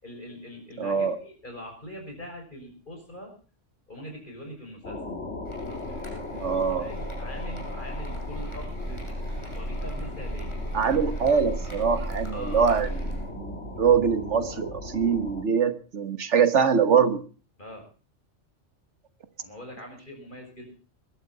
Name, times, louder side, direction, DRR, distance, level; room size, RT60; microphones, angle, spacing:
voice 1, 0.0-3.3 3.9-5.0 5.8-9.0 9.5-10.5 12.3-12.7 17.6-17.9 19.4-20.8, left 1 dB, 40° left, 2 dB, 6.3 m, -42 dB
voice 2, 0.8-1.1 6.3-6.9 10.7-12.9 13.3-17.2, right 6 dB, 70° right, 11 dB, 1.6 m, -23 dB
sound 1, 4.8-15.4, left 2 dB, 70° left, 2.4 m, -38 dB
sound 2, 5.5-13.3, right 1 dB, 25° left, 5.4 m, -35 dB
21.5 x 12.0 x 4.0 m, 0.37 s
omnidirectional pair, 1.3 m